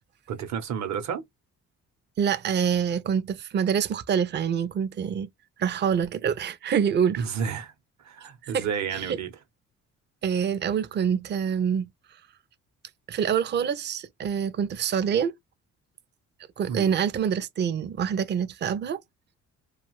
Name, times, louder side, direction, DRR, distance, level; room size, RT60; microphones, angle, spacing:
voice 1, 0.3-1.2 7.2-7.7 8.0-9.3 16.7-16.9, right 7 dB, 65° right, 0.8 m, -31 dB
voice 2, 2.2-5.3 5.6-7.3 8.4-8.7 8.9-9.2 10.2-11.9 13.1-15.4 16.6-19.0, right 7 dB, 35° right, 0.4 m, -26 dB
2.4 x 2.3 x 3.0 m
cardioid pair, 90°, 30 cm